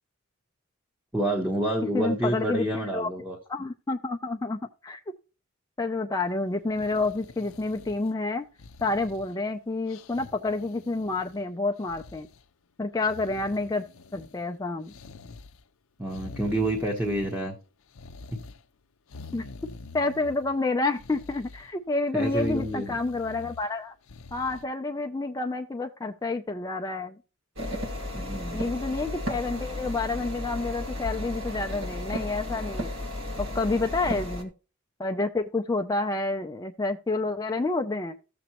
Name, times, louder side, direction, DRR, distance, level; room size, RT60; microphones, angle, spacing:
voice 1, 1.1-3.4 16.0-17.5 22.1-22.9 28.1-28.7 34.1-34.2, right 1 dB, 10° right, 0 dB, 1.0 m, -28 dB
voice 2, 1.9-2.7 2.9-3.1 3.5-5.0 5.8-8.4 8.8-12.3 12.8-13.8 14.1-14.9 19.3-19.5 19.9-24.0 24.3-27.2 28.5-32.9 33.4-34.5 35.0-38.1, left 3 dB, 15° left, 3 dB, 0.3 m, -29 dB
sound 1, 6.6-8.2 8.6-9.5 9.9-11.4 11.8-12.4 13.0-14.5 14.9-15.6 16.1-17.6 17.9-18.6 19.1-20.5 20.9-21.7 22.2-23.7 24.1-24.6, left 3 dB, 75° left, 0.6 m, -46 dB
sound 2, 27.6-34.4, left 1 dB, 65° right, 1.7 m, -34 dB
14.0 x 6.9 x 2.9 m, 0.34 s
head